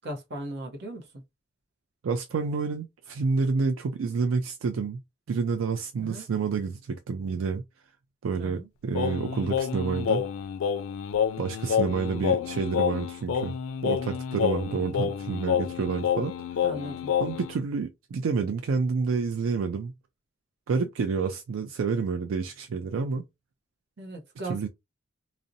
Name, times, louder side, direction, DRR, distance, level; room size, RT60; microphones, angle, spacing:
voice 1, 0.0-1.2 6.0-6.3 8.4-8.7 16.6-17.1 24.0-24.7, right 1 dB, 60° right, 0.7 m, -38 dB
voice 2, 2.0-5.0 5.3-7.6 8.2-10.2 11.4-13.6 13.8-16.3 17.2-19.9 20.7-23.2 24.5-24.7, right 5 dB, 85° right, 0.4 m, -29 dB
Singing, 8.9-17.6, left 8 dB, 85° left, 0.3 m, -28 dB
2.6 x 2.0 x 2.5 m
head